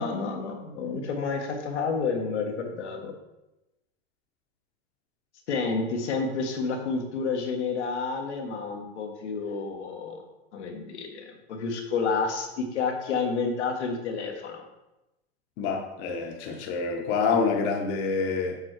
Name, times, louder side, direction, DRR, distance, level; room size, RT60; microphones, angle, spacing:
voice 1, 0.0-3.1 5.5-10.2 10.5-14.6, left 4 dB, 90° left, 2 dB, 1.5 m, -30 dB
voice 2, 15.6-18.6, left 5 dB, 60° left, 3 dB, 1.2 m, -27 dB
7.5 x 4.3 x 4.6 m, 0.97 s
hypercardioid pair, 110°, 33 cm